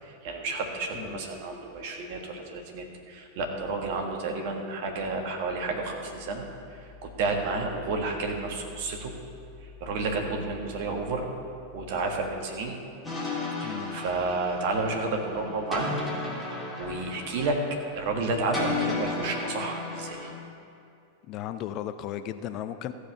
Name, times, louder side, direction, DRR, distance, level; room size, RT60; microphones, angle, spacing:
voice 1, 0.0-6.4 6.8-9.1 9.8-11.3 11.7-12.8 13.6-15.9 16.8-17.6 17.9-20.3, right 3 dB, 50° right, 2 dB, 1.5 m, -31 dB
voice 2, 0.9-1.3 13.6-14.0 21.3-22.9, left 11 dB, 40° left, 10 dB, 0.4 m, -35 dB
sound 1, 13.0-20.3, left 3 dB, 5° left, 2.5 m, -34 dB
14.5 x 4.9 x 7.0 m, 2.5 s
figure-of-eight pair, 90°, 0 cm